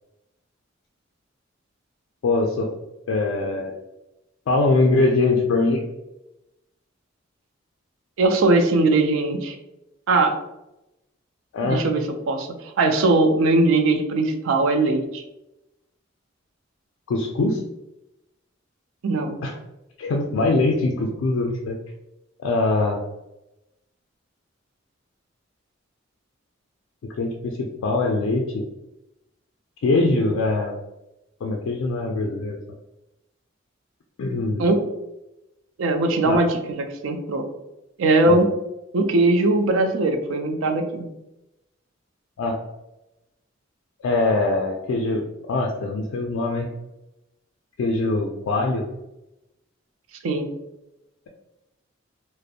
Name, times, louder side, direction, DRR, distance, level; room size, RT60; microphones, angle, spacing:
voice 1, 2.2-2.7 3.1-3.7 4.5-5.8 11.5-11.8 17.1-17.6 19.4-19.5 20.0-21.8 22.4-23.0 27.2-28.6 29.8-30.8 31.4-32.6 34.2-34.6 36.3-36.4 38.3-38.4 42.4-42.6 44.0-46.7 47.8-48.9, left 2 dB, 85° left, 0 dB, 0.3 m, -22 dB
voice 2, 8.2-9.6 10.1-10.3 11.6-15.2 19.0-19.4 34.6-34.8 35.8-37.5 38.0-38.5 38.9-41.1 50.2-50.5, right 2 dB, 90° right, 6 dB, 0.4 m, -20 dB
2.4 x 2.0 x 2.6 m, 0.93 s
head